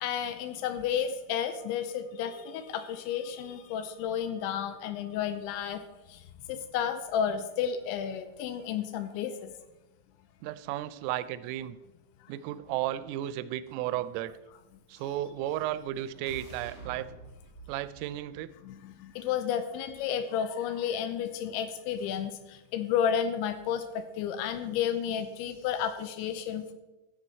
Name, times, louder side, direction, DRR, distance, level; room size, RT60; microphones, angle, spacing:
voice 1, 0.0-5.8 6.1-6.2 6.5-9.5 18.6-26.7, left 8 dB, 85° left, 9 dB, 2.8 m, -32 dB
voice 2, 10.4-11.8 12.3-14.3 14.9-17.1 17.7-18.5, right 13 dB, 90° right, 15 dB, 3.2 m, -34 dB
sound 1, 15.3-19.3, right 2 dB, 55° left, 1.1 m, -50 dB
15.5 x 6.9 x 4.4 m, 1.0 s
omnidirectional pair, 5.7 m